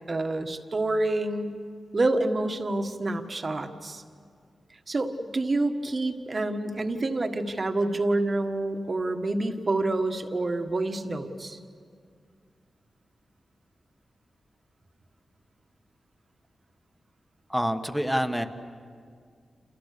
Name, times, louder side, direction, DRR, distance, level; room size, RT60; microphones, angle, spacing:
voice 1, 0.1-1.6 1.9-4.0 4.9-11.6, right 2 dB, 35° right, 6 dB, 1.7 m, -28 dB
voice 2, 17.5-18.4, equal, ahead, 7 dB, 1.4 m, -26 dB
29.0 x 28.5 x 6.8 m, 2.1 s
wide cardioid pair, 115°, 0 cm